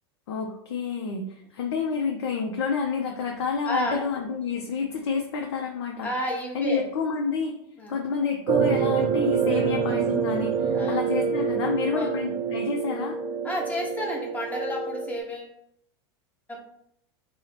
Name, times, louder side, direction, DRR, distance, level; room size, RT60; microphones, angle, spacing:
voice 1, 0.3-1.3 1.5-6.1 6.5-7.6 7.9-13.2, left 5 dB, 85° left, 1 dB, 0.5 m, -29 dB
voice 2, 3.6-4.1 6.0-6.8 7.8-7.9 9.5-9.7 10.7-11.1 11.9-12.1 13.4-15.5 16.5-16.6, equal, 10° left, 0 dB, 0.8 m, -31 dB
sound 1, 8.5-15.2, right 7 dB, 40° right, 0.4 m, -26 dB
2.8 x 2.0 x 4.0 m, 0.72 s
supercardioid pair, 125°, 14 cm